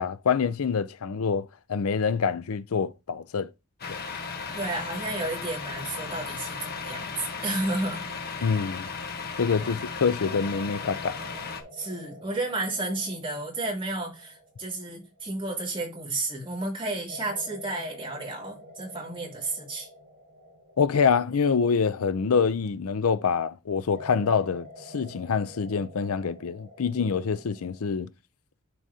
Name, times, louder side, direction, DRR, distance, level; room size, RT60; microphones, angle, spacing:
voice 1, 0.0-3.5 3.9-4.0 8.4-8.9 9.4-11.2 20.8-28.1, left 6 dB, 70° left, 0.5 m, -26 dB
Truck, 3.8-11.6, left 5 dB, 45° left, 1.2 m, -36 dB
voice 2, 4.5-7.1 7.4-8.1 9.6-9.8 11.7-19.9, right 2 dB, 25° right, 2.8 m, -32 dB
sound 1, 10.2-16.2 17.1-23.1 23.9-27.9, left 1 dB, 40° right, 2.4 m, -48 dB
11.0 x 4.8 x 2.8 m
head